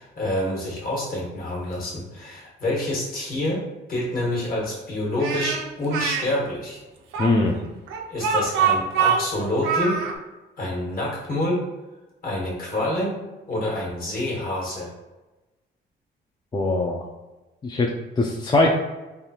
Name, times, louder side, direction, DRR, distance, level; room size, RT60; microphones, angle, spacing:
voice 1, 0.0-3.6 3.9-6.8 8.1-10.0 10.6-11.6 12.2-13.2 13.5-14.9, left 1 dB, 45° left, -4 dB, 1.3 m, -27 dB
Speech, 5.2-6.2 7.1-10.1, right 6 dB, 90° right, 0.5 m, -24 dB
voice 2, 7.2-7.6 16.5-17.1 17.6-18.7, left 2 dB, 20° left, -1 dB, 0.3 m, -21 dB
3.3 x 2.3 x 2.8 m, 1.1 s
cardioid pair, 90°, 20 cm